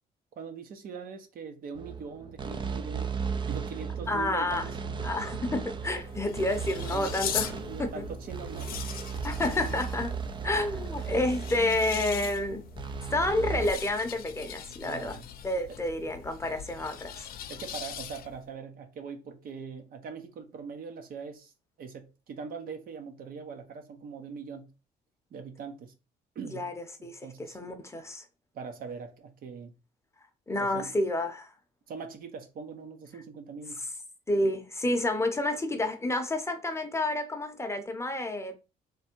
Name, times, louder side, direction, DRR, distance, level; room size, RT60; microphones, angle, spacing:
voice 1, 0.4-3.1 3.5-4.8 6.1-6.2 6.9-8.8 14.8-15.3 17.5-21.5 21.8-24.7 25.3-25.9 26.3-26.7 27.0-27.6 28.5-29.7 30.6-30.9 31.9-33.8, right 5 dB, 60° right, 1.1 m, -42 dB
sound 1, 1.8-13.7, right 5 dB, 30° right, 0.5 m, -36 dB
voice 2, 4.1-4.7 5.0-8.0 9.2-10.1 10.4-12.7 13.1-15.2 15.4-17.3 26.5-26.7 27.0-28.2 30.5-31.5 34.3-38.6, left 1 dB, 15° left, 0.8 m, -30 dB
sound 2, 5.7-18.5, left 9 dB, 60° left, 0.7 m, -41 dB
3.4 x 3.3 x 4.5 m
cardioid pair, 110°, 17 cm